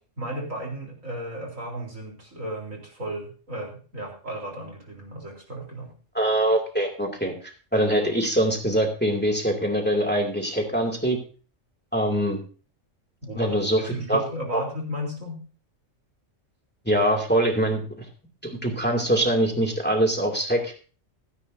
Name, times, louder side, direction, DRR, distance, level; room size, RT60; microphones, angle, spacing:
voice 1, 0.2-5.9 13.2-15.4, right 1 dB, 80° right, 0 dB, 4.2 m, -34 dB
voice 2, 6.1-7.3 7.7-11.2 11.9-12.4 13.4-14.2 14.5-14.6 16.8-18.1 18.4-20.7, right 1 dB, 10° left, 2 dB, 2.5 m, -23 dB
16.0 x 14.0 x 2.7 m, 0.38 s
omnidirectional pair, 1.3 m